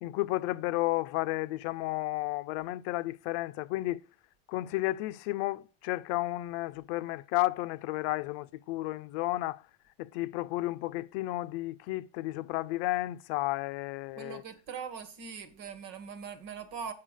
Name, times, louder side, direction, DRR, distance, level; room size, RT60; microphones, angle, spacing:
voice 1, 0.0-4.0 4.5-9.6 10.0-14.4, left 18 dB, 75° left, 0.6 m, -32 dB
voice 2, 14.2-16.9, right 6 dB, 65° right, 1.8 m, -41 dB
7.7 x 5.9 x 6.3 m
supercardioid pair, 85°, 33 cm